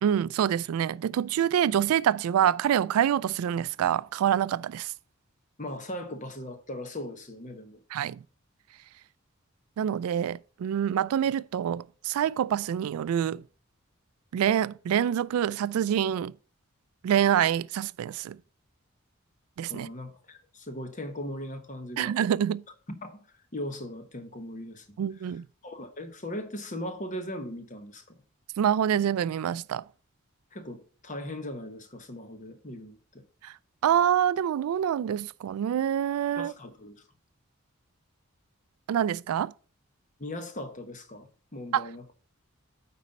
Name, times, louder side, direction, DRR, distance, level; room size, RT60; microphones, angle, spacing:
voice 1, 0.0-4.9 7.9-8.2 9.8-13.4 14.3-16.3 17.0-18.4 19.6-19.9 22.0-22.6 25.0-25.4 28.6-29.8 33.4-33.5 33.8-36.5 38.9-39.5 41.7-41.9, right 9 dB, 90° right, 0.3 m, -26 dB
voice 2, 5.6-7.8 19.7-22.2 22.9-23.3 23.5-24.9 25.6-28.1 30.5-33.2 36.4-37.0 40.2-42.1, left 1 dB, 35° left, 1.0 m, -39 dB
9.2 x 4.2 x 5.3 m
head